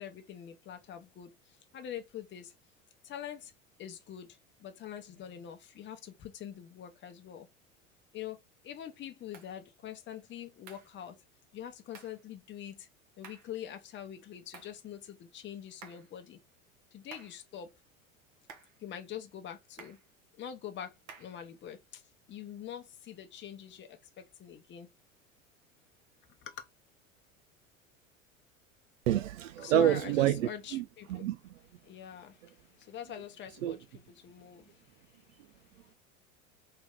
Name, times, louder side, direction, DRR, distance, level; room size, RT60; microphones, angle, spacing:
voice 1, 0.0-2.5 3.0-3.5 3.8-7.5 8.1-8.4 8.6-11.2 11.5-12.9 13.2-16.4 16.9-17.7 18.8-20.0 20.4-22.0 22.3-24.9 26.4-26.7 29.6-31.3 31.8-35.9, left 10 dB, 30° left, 0.8 m, -44 dB
sound 1, 9.3-9.6 10.7-10.9 11.9-12.2 13.2-13.6 14.5-14.8 15.8-16.1 17.1-17.4 18.5-18.8 19.8-20.1 21.1-21.4, right 6 dB, 45° right, 1.1 m, -52 dB
voice 2, 29.1-30.8 31.1-31.4 33.6-33.8, right 12 dB, 70° right, 0.6 m, -28 dB
3.3 x 2.9 x 3.7 m
hypercardioid pair, 80°, 40 cm